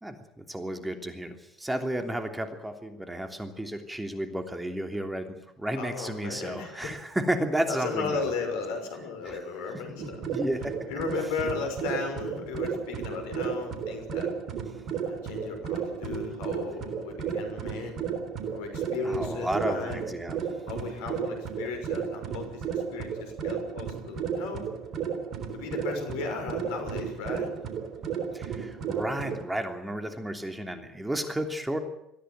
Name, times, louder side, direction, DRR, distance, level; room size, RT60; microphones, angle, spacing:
voice 1, 0.0-8.2 9.3-9.4 9.7-10.8 19.0-20.4 28.3-31.8, right 1 dB, 10° right, 6 dB, 3.1 m, -32 dB
voice 2, 5.8-6.9 7.7-10.2 10.9-14.3 15.0-18.1 18.5-20.0 20.7-24.6 25.5-27.5, left 4 dB, 70° left, 5 dB, 6.1 m, -35 dB
sound 1, 10.0-29.4, right 7 dB, 50° right, 3.4 m, -34 dB
22.5 x 15.0 x 9.1 m, 0.83 s
hypercardioid pair, 70°, 0 cm